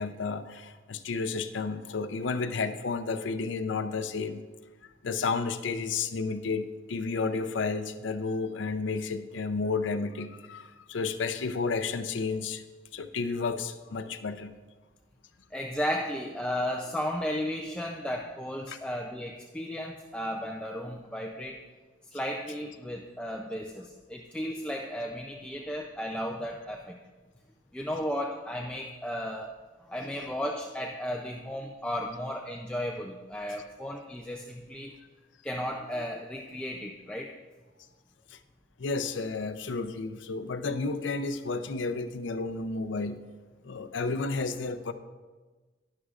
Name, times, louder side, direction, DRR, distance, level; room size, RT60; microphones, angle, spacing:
voice 1, 0.0-4.4 5.0-12.6 12.9-14.5 18.7-18.8 38.3-38.4 38.8-43.2 43.6-44.9, left 4 dB, 80° left, 10 dB, 0.5 m, -32 dB
voice 2, 15.5-21.6 22.1-27.0 27.7-29.6 29.9-34.9 35.4-37.3, equal, 5° left, 0 dB, 0.4 m, -34 dB
11.5 x 11.0 x 2.4 m, 1.3 s
head